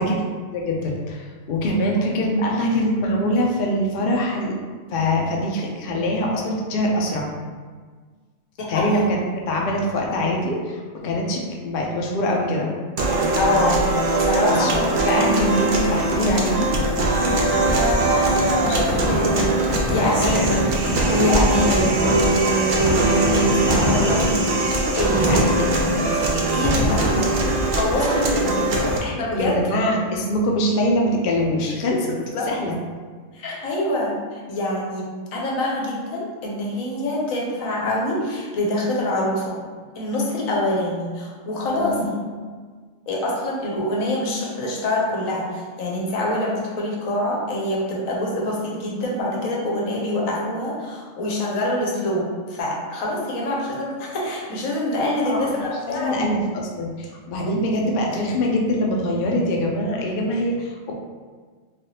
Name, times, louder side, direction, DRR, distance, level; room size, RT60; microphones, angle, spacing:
voice 1, 0.0-4.6 4.9-7.3 8.7-12.7 14.6-14.7 15.0-16.7 17.0-17.2 25.3-26.0 29.3-32.1 32.5-32.8 41.7-41.9 55.2-55.5 55.9-60.9, equal, 65° left, -1 dB, 0.5 m, -23 dB
voice 2, 8.6-9.1 13.3-14.8 17.6-25.7 25.9-27.5 27.8-29.6 32.3-32.5 33.3-39.6 40.0-42.1 43.1-56.2 57.4-57.5, left 1 dB, 80° left, -3 dB, 1.1 m, -25 dB
sound 1, 13.0-29.0, right 2 dB, 80° right, 0.4 m, -21 dB
Fireworks, 15.9-29.4, left 1 dB, 50° left, 0.9 m, -27 dB
3.3 x 2.3 x 2.7 m, 1.5 s
omnidirectional pair, 1.4 m